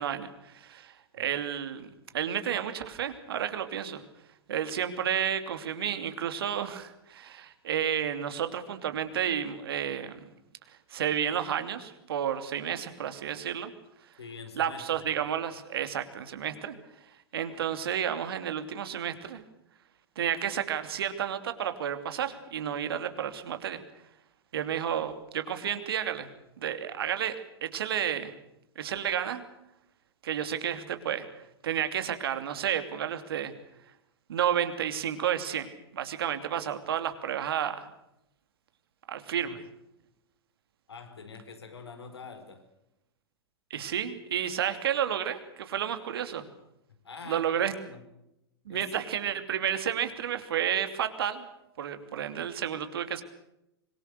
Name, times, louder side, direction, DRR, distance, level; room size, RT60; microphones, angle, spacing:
voice 1, 0.0-1.9 2.1-4.0 4.5-10.2 10.9-13.7 14.5-16.7 17.3-19.4 20.2-23.8 24.5-26.3 26.6-28.3 28.8-29.4 30.2-31.3 31.6-33.5 34.3-37.9 39.1-39.6 43.7-46.5 47.3-47.7 48.7-51.4 51.8-53.2, right 9 dB, 65° right, 2.9 m, -31 dB
voice 2, 14.2-15.0 39.4-39.6 40.9-42.7 47.0-47.5 47.9-48.3 48.7-48.9, left 5 dB, 80° left, 4.7 m, -45 dB
25.5 x 22.0 x 6.8 m
figure-of-eight pair, 100°, 13 cm